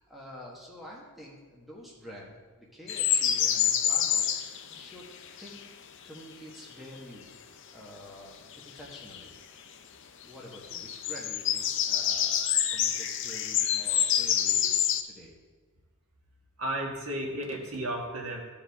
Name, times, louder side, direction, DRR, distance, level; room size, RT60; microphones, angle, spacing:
voice 1, 0.0-5.1 5.4-7.2 7.7-9.4 10.2-15.3, equal, ahead, -4 dB, 1.3 m, -48 dB
sound 1, 2.9-5.6 8.5-9.2 10.5-15.0, left 9 dB, 55° left, 0.5 m, -27 dB
voice 2, 16.6-18.4, right 1 dB, 70° right, 0 dB, 1.4 m, -33 dB
14.0 x 4.9 x 3.5 m, 1.4 s
head